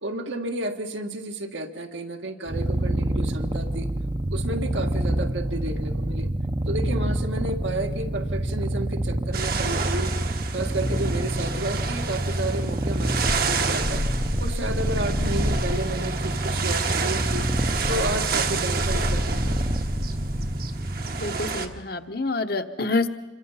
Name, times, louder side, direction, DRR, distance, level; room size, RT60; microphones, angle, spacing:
voice 1, 0.0-3.9 4.3-6.3 6.7-10.1 10.5-14.1 14.4-17.5 17.9-19.8 20.1-20.3, right 1 dB, 80° right, 4 dB, 1.7 m, -32 dB
Purr, 2.5-21.8, right 1 dB, 25° right, 0.7 m, -27 dB
sound 1, 9.3-21.7, right 5 dB, 50° right, 1.1 m, -30 dB
sound 2, 13.2-15.9 17.1-20.6, left 1 dB, 35° left, 0.6 m, -31 dB
voice 2, 21.2-23.1, left 3 dB, 50° left, 7 dB, 1.1 m, -27 dB
27.0 x 23.0 x 5.7 m, 1.2 s
head